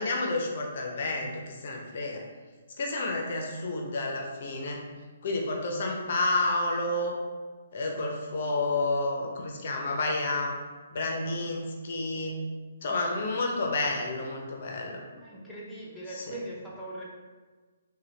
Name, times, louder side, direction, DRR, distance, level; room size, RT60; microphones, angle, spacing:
voice 1, 0.0-2.2 2.8-4.8 5.2-7.1 7.7-10.6 10.9-12.4 12.8-15.0 16.1-16.4, left 2 dB, 55° left, 1 dB, 0.5 m, -30 dB
voice 2, 15.1-17.0, right 1 dB, 5° left, -7 dB, 0.7 m, -40 dB
4.0 x 2.2 x 3.1 m, 1.4 s
hypercardioid pair, 140°, 0 cm